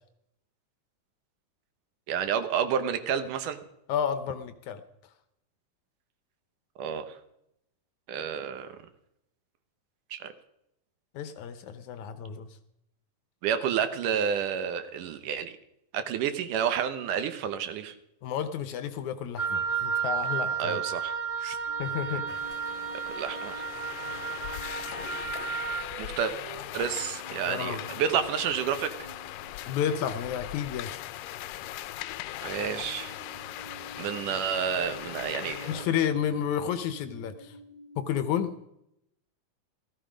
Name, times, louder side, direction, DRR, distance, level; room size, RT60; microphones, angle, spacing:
voice 1, 2.1-3.6 6.8-7.2 8.1-8.7 10.1-10.3 13.4-15.5 15.9-17.9 20.6-21.1 21.4-21.6 23.1-23.7 26.0-26.3 26.7-28.9 32.4-33.1 34.0-35.8, right 8 dB, 75° right, 10 dB, 2.5 m, -30 dB
voice 2, 3.9-4.8 11.1-12.5 18.2-20.8 21.8-22.2 27.5-27.8 29.7-30.9 35.7-37.6 38.0-38.7, left 9 dB, 70° left, 11 dB, 2.0 m, -31 dB
Wind instrument woodwind instrument, 19.4-25.9, right 6 dB, 20° left, 2.2 m, -32 dB
sound 1, 21.7-31.0 31.8-32.1 32.5-38.1, right 2 dB, 55° right, 3.4 m, -50 dB
sound 2, 22.3-35.9, left 14 dB, 85° left, 2.3 m, -40 dB
16.5 x 14.5 x 5.1 m, 0.80 s
omnidirectional pair, 3.8 m